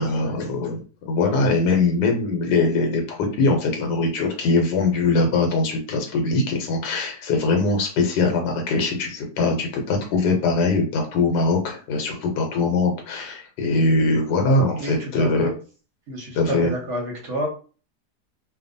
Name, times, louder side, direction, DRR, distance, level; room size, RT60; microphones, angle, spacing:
voice 1, 0.0-15.5 16.3-16.7, left 3 dB, 80° left, 3 dB, 1.2 m, -22 dB
voice 2, 14.8-15.5 16.1-17.5, equal, 55° right, -1 dB, 0.9 m, -29 dB
2.7 x 2.2 x 2.5 m, 0.38 s
omnidirectional pair, 1.8 m